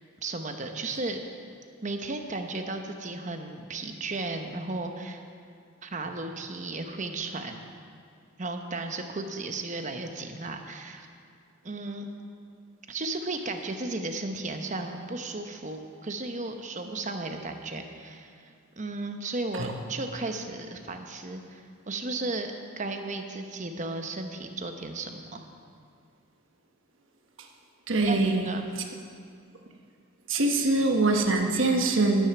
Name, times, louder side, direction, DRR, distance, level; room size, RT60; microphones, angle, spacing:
voice 1, 0.2-1.2 1.8-5.2 5.8-7.6 8.4-11.1 11.6-12.1 12.9-18.5 18.8-25.5 28.0-28.6, right 2 dB, 35° right, 5 dB, 0.8 m, -34 dB
voice 2, 27.9-28.4 30.3-32.3, right 2 dB, 65° right, 3 dB, 1.2 m, -23 dB
10.5 x 10.0 x 6.0 m, 2.3 s
head